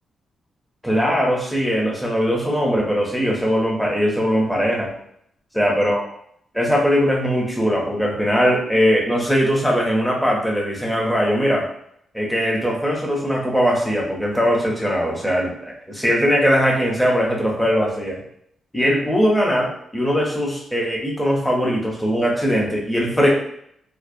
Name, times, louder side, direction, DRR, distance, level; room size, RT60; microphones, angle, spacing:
voice 1, 0.8-4.9 5.5-6.0 6.5-11.7 12.1-18.2 18.7-23.3, equal, ahead, -3 dB, 0.5 m, -20 dB
2.4 x 2.0 x 2.5 m, 0.70 s
wide cardioid pair, 150°, 0 cm